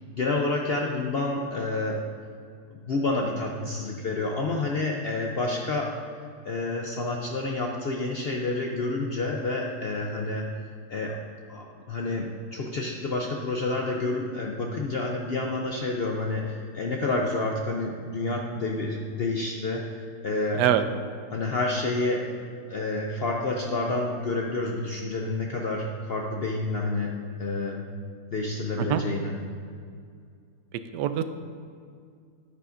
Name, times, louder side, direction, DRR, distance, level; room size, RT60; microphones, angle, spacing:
voice 1, 0.2-2.0 2.7-6.0 6.4-10.5 10.9-11.2 11.5-19.8 20.2-20.6 21.3-22.4 22.7-27.1 27.4-27.9 28.3-29.3, left 2 dB, 60° left, 0 dB, 0.6 m, -29 dB
voice 2, 30.7-31.2, right 10 dB, 85° right, 10 dB, 1.2 m, -24 dB
9.9 x 9.5 x 2.6 m, 2.2 s
omnidirectional pair, 1.8 m